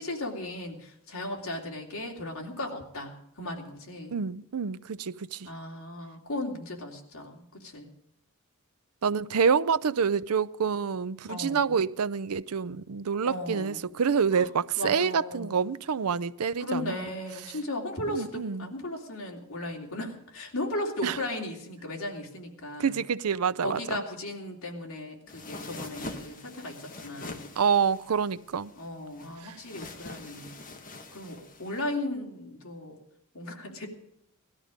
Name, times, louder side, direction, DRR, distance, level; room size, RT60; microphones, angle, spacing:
voice 1, 0.0-4.2 5.4-7.9 11.3-11.7 13.2-13.8 14.3-14.5 14.8-15.7 16.6-22.9 23.6-27.4 28.8-30.5 31.1-33.0 33.3-33.9, left 1 dB, 70° left, 2.9 m, -36 dB
voice 2, 4.1-5.5 9.0-17.1 17.4-17.6 18.1-18.7 21.0-21.2 22.8-24.0 27.6-28.7 29.4-29.6, right 6 dB, 90° right, 0.6 m, -27 dB
sound 1, 25.3-31.9, left 2 dB, 40° left, 1.5 m, -44 dB
18.0 x 13.0 x 5.1 m
head